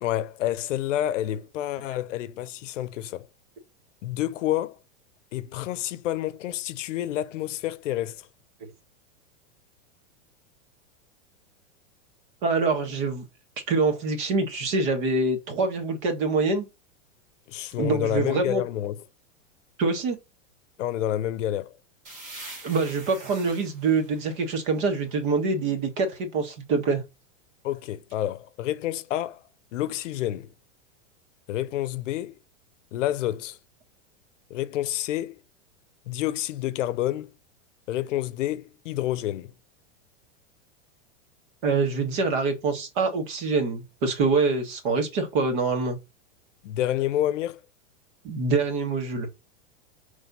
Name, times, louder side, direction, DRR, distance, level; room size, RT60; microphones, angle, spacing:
voice 1, 0.0-3.3 4.0-4.8 5.3-8.3 17.5-19.0 20.8-21.7 27.6-29.4 29.7-30.5 31.5-32.4 32.9-33.6 34.5-35.4 36.1-37.3 37.9-39.5 46.6-47.6, left 13 dB, 80° left, 0.7 m, -29 dB
voice 2, 12.4-13.2 13.7-16.6 17.8-18.6 19.8-20.2 22.6-27.0 41.6-46.0 48.2-49.3, right 4 dB, 40° right, 1.6 m, -25 dB
sound 1, 22.0-25.7, right 2 dB, 20° right, 1.6 m, -45 dB
5.3 x 3.4 x 5.4 m
supercardioid pair, 165°, 37 cm